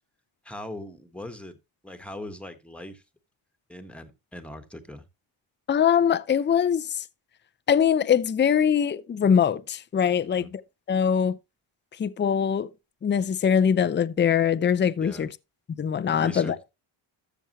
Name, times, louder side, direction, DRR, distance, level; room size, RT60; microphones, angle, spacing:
voice 1, 0.4-1.6 1.8-3.0 3.7-5.0 10.3-10.5 15.0-15.3 16.2-16.7, left 1 dB, ahead, 1.4 m, -40 dB
voice 2, 5.7-7.0 7.7-10.4 10.9-11.3 12.0-12.7 13.0-15.3 15.7-16.6, left 8 dB, 25° left, 0.5 m, -22 dB
13.0 x 7.1 x 3.0 m
cardioid pair, 100°, 50 cm